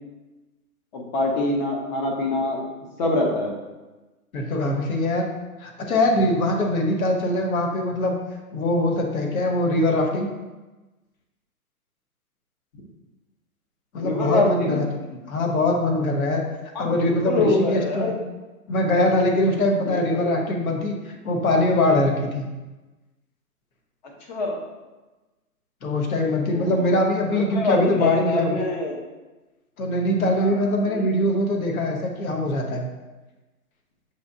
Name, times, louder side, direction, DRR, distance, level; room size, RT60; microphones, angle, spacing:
voice 1, 0.9-2.6 3.0-3.6 13.9-14.8 16.7-18.2 19.9-20.3 24.3-24.6 26.5-26.9 27.3-29.0 30.4-31.0, left 2 dB, 30° left, 1 dB, 0.7 m, -25 dB
voice 2, 4.3-5.2 5.6-8.1 8.5-10.3 13.9-14.9 15.1-16.4 16.8-18.1 18.7-22.5 25.8-28.6 29.8-32.9, left 1 dB, 65° left, 2 dB, 1.0 m, -22 dB
6.7 x 2.8 x 2.5 m, 1.1 s
figure-of-eight pair, 125°, 45 cm